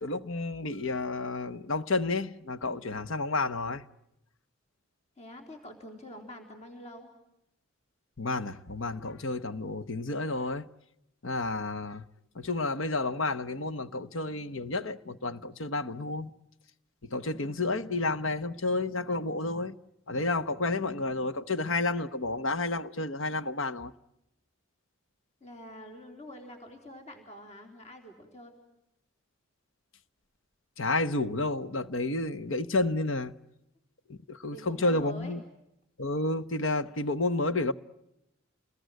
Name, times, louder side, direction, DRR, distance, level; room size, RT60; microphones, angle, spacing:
voice 1, 0.0-3.8 8.2-10.6 11.2-12.0 12.4-16.3 17.1-19.7 20.1-23.9 30.8-33.3 34.3-35.4 36.0-37.7, left 2 dB, 65° left, 1.1 m, -30 dB
voice 2, 2.6-3.0 5.2-7.1 17.3-17.8 25.4-28.6 34.5-35.3, equal, 30° left, 3.9 m, -47 dB
29.0 x 21.0 x 9.3 m
head